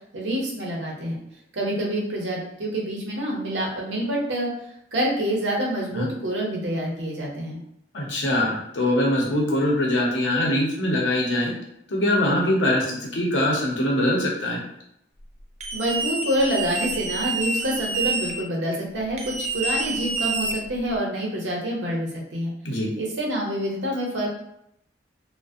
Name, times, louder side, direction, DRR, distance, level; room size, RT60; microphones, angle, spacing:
voice 1, 0.1-1.2 1.5-4.5 4.9-7.6 15.7-22.5 23.0-24.3, right 1 dB, 85° right, -2 dB, 0.7 m, -27 dB
voice 2, 7.9-11.5 11.9-14.6 22.6-22.9, left 1 dB, 90° left, -1 dB, 0.7 m, -23 dB
sound 1, 15.6-18.3 19.2-21.0, right 3 dB, 35° right, 0.3 m, -28 dB
2.3 x 2.1 x 2.5 m, 0.77 s
head